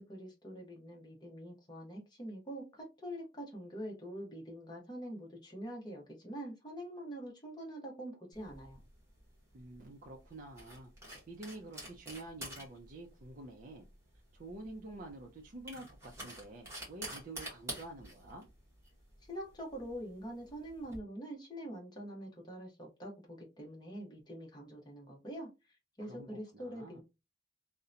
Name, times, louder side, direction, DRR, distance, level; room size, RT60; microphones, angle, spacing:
voice 1, 0.0-8.8 19.3-27.0, equal, 20° left, 0.8 m, -45 dB
sound 1, 8.3-21.0, right 1 dB, 15° right, 1.0 m, -49 dB
voice 2, 9.5-10.9 11.3-13.9 14.4-18.5 26.0-27.0, right 2 dB, 40° right, 0.4 m, -48 dB
2.7 x 2.1 x 2.4 m
head